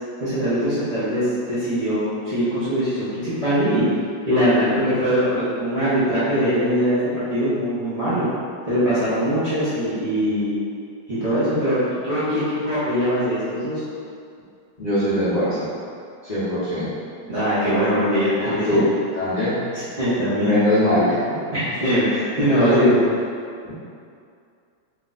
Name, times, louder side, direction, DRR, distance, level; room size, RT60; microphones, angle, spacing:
voice 1, 0.2-3.8 4.3-8.3 8.7-10.5 11.2-11.8 12.0-13.8 17.3-18.8 20.0-20.5 21.5-23.0, equal, 90° right, -13 dB, 0.3 m, -21 dB
voice 2, 14.8-15.7 16.2-16.9 18.4-18.9 19.1-19.6 20.4-21.4 22.4-23.1 23.6-23.7, left 1 dB, 60° left, -13 dB, 0.4 m, -21 dB
3.1 x 2.4 x 3.9 m, 2.4 s
omnidirectional pair, 2.0 m